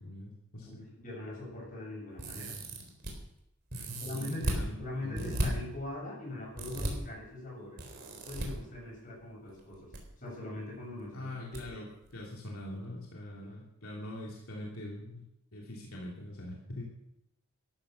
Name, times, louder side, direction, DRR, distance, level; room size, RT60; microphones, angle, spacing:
voice 1, 0.0-0.7 3.7-5.6 11.1-15.2 15.5-16.8, left 1 dB, 75° left, -3 dB, 2.9 m, -42 dB
voice 2, 0.6-2.6 4.0-7.8 8.2-11.3 11.6-11.7, left 2 dB, 35° left, -2 dB, 7.6 m, -42 dB
sound 1, 2.2-3.1 3.7-4.6 5.1-5.5 6.6-6.9 7.8-8.5 9.6-10.0 10.3-10.4 11.5-11.6 12.0-12.1, right 1 dB, 45° right, 3.9 m, -35 dB
14.0 x 12.5 x 6.5 m, 0.82 s
head